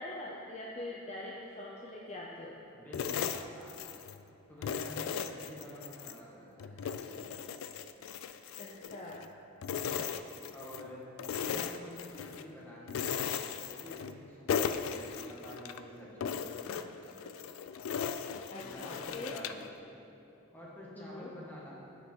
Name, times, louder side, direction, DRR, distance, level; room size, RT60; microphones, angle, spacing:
voice 1, 0.0-2.6 8.6-9.2 18.5-19.4 21.0-21.3, left 2 dB, 35° left, -3 dB, 0.6 m, -43 dB
voice 2, 2.7-3.9 4.5-7.3 10.5-11.1 11.4-16.9 18.6-19.7 20.5-21.7, equal, 10° left, -6 dB, 1.5 m, -49 dB
sound 1, 2.9-4.2 4.6-6.2 6.6-9.3 9.6-10.9 11.2-12.5 12.9-14.2 14.5-15.8 16.2-19.7, left 7 dB, 85° left, 0.3 m, -37 dB
7.6 x 6.7 x 4.5 m, 2.9 s
head